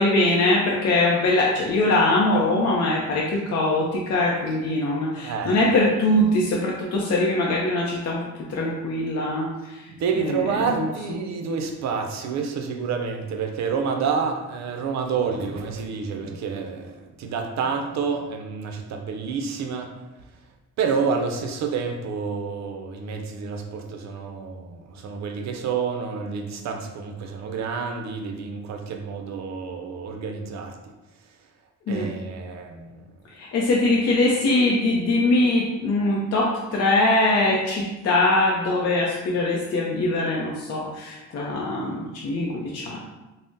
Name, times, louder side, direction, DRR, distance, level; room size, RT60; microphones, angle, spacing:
voice 1, 0.0-9.9 10.2-10.9 31.9-32.1 33.3-43.0, left 2 dB, 55° left, -3 dB, 0.5 m, -22 dB
voice 2, 5.2-5.6 10.0-19.9 20.8-30.7 31.9-32.9, right 5 dB, 65° right, 4 dB, 0.5 m, -28 dB
3.5 x 2.0 x 2.6 m, 1.1 s
cardioid pair, 90°, 30 cm